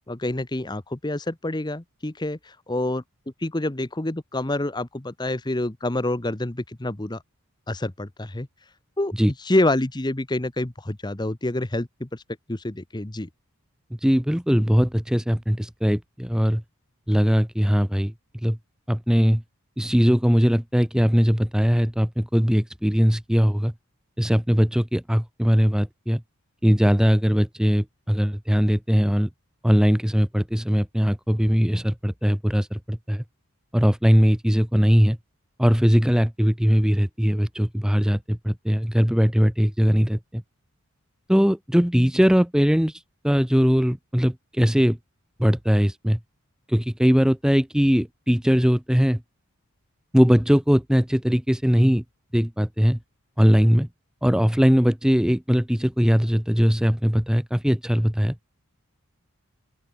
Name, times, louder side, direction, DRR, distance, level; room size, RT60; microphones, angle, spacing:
voice 1, 0.1-3.0 3.4-7.2 7.7-8.5 9.0-9.1 9.4-12.2 12.5-13.3, left 1 dB, 20° left, 0.9 m, -27 dB
voice 2, 14.0-16.6 17.1-18.1 18.4-18.6 18.9-19.4 19.8-23.7 24.2-26.2 26.6-29.3 29.6-33.2 33.7-35.2 35.6-40.4 41.3-45.0 45.4-46.2 46.7-49.2 50.1-52.0 52.3-53.0 53.4-53.9 54.2-58.4, equal, 5° right, 0.6 m, -20 dB
open air
head